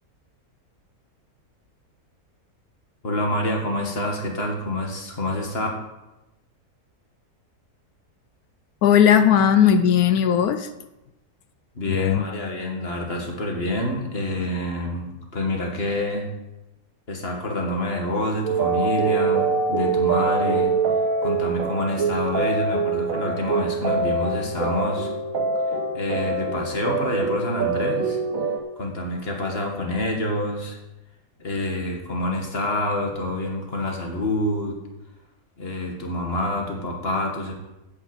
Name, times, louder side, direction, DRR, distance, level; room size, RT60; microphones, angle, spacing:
voice 1, 3.0-5.7 11.7-16.3 17.1-20.7 21.2-25.1 25.9-28.2 28.8-30.8 31.4-34.8 35.6-37.5, left 1 dB, 40° left, 1 dB, 2.3 m, -27 dB
voice 2, 8.8-10.7 11.9-12.2, left 8 dB, 80° left, 10 dB, 1.2 m, -17 dB
sound 1, 18.5-28.6, right 4 dB, 65° right, 1.7 m, -24 dB
8.6 x 8.0 x 8.0 m, 0.97 s
omnidirectional pair, 1.6 m